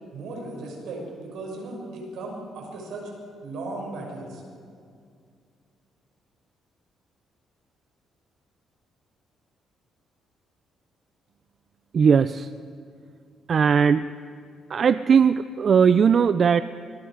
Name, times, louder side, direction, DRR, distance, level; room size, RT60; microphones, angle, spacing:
voice 1, 0.1-3.1 3.4-4.4, right 2 dB, 80° right, 0 dB, 6.4 m, -36 dB
voice 2, 11.9-12.5 13.5-14.1 14.7-16.6, right 6 dB, 50° right, 13 dB, 0.5 m, -18 dB
25.0 x 21.5 x 5.0 m, 2.3 s
cardioid pair, 90°, 0 cm